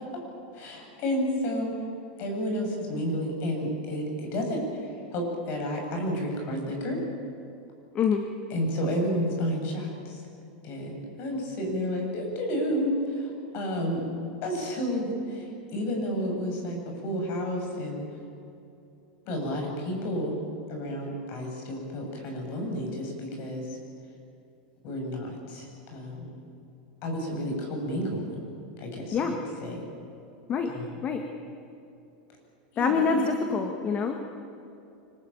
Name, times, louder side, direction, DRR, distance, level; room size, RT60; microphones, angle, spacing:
voice 1, 0.5-1.7 2.2-4.8 5.1-7.0 8.5-10.2 10.6-14.0 14.4-18.0 19.3-20.3 20.7-23.7 24.8-26.3 27.0-28.4 28.8-29.3 29.6-29.9 30.7-31.0 32.7-33.3, equal, 45° left, 2 dB, 7.9 m, -31 dB
voice 2, 32.8-34.2, left 5 dB, 30° left, 5 dB, 1.7 m, -26 dB
25.5 x 19.5 x 8.9 m, 2.7 s
supercardioid pair, 140°, 5 cm